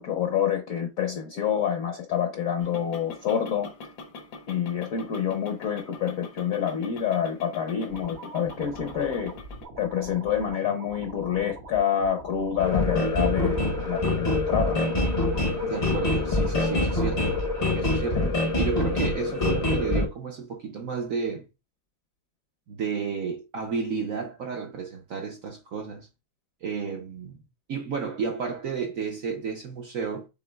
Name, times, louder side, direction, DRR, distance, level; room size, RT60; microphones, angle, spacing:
voice 1, 0.0-3.7 4.5-9.3 9.8-14.8 18.1-18.3, left 8 dB, 60° left, 0.9 m, -27 dB
sound 1, 2.6-9.6, left 3 dB, 80° left, 1.7 m, -44 dB
sound 2, 7.9-17.9, right 2 dB, 85° right, 1.8 m, -44 dB
sound 3, 12.6-20.1, left 2 dB, 45° left, 0.5 m, -25 dB
voice 2, 15.6-17.4 17.7-21.5 22.7-26.1 26.6-27.4 27.7-30.3, right 5 dB, 65° right, 0.8 m, -32 dB
6.0 x 3.7 x 2.2 m
omnidirectional pair, 2.1 m